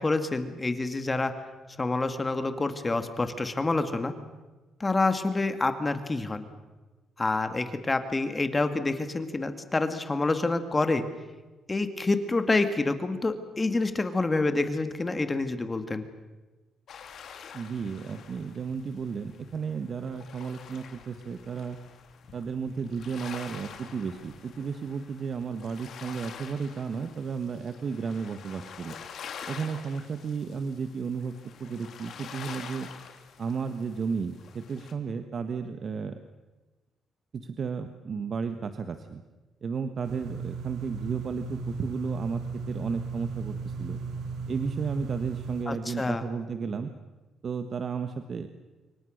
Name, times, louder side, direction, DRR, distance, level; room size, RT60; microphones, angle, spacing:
voice 1, 0.0-1.3 1.8-4.1 4.8-6.4 7.2-11.1 11.7-16.0 45.7-46.2, left 3 dB, 25° left, 9 dB, 2.2 m, -27 dB
sound 1, 16.9-34.9, left 7 dB, 65° left, 3.2 m, -46 dB
voice 2, 17.5-21.8 22.3-29.0 29.4-31.3 31.6-32.9 33.4-36.1 37.3-39.2 39.6-42.4 42.7-44.0 44.5-46.9 47.4-48.5, right 5 dB, 50° right, 8 dB, 1.5 m, -33 dB
sound 2, 40.0-45.7, right 4 dB, 80° right, 4.3 m, -36 dB
27.0 x 23.5 x 6.6 m, 1.2 s
cardioid pair, 90°, 0 cm